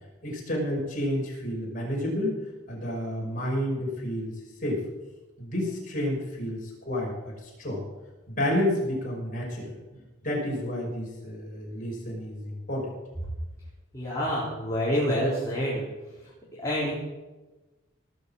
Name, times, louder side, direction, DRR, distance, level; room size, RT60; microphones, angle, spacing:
voice 1, 0.2-2.4 2.7-4.8 5.4-7.8 8.3-9.8 10.2-12.9, left 1 dB, 40° left, -3 dB, 5.7 m, -30 dB
voice 2, 13.9-15.8 16.6-16.9, equal, 15° left, -8 dB, 3.8 m, -27 dB
19.0 x 6.9 x 7.7 m, 1.2 s
head